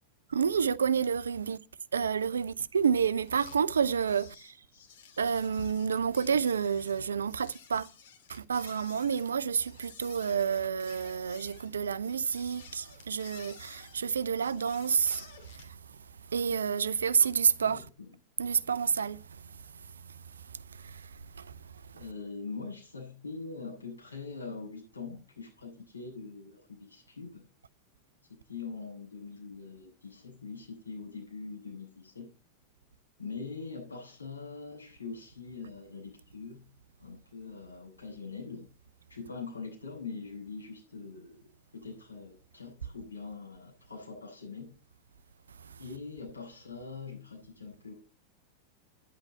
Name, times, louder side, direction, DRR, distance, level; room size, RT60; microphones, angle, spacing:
voice 1, 0.3-1.6 1.9-4.6 5.2-7.9 8.3-15.8 16.2-17.8 18.4-22.0 45.6-45.8, right 6 dB, 70° right, 0.6 m, -30 dB
sound 1, 3.2-15.8, left 7 dB, 55° left, 2.6 m, -53 dB
voice 2, 21.9-27.4 28.3-32.3 33.2-36.7 37.0-38.7 39.1-41.4 41.7-44.7 45.8-47.9, left 4 dB, 80° left, 7.9 m, -43 dB
11.5 x 10.5 x 4.2 m
figure-of-eight pair, 90°, 0 cm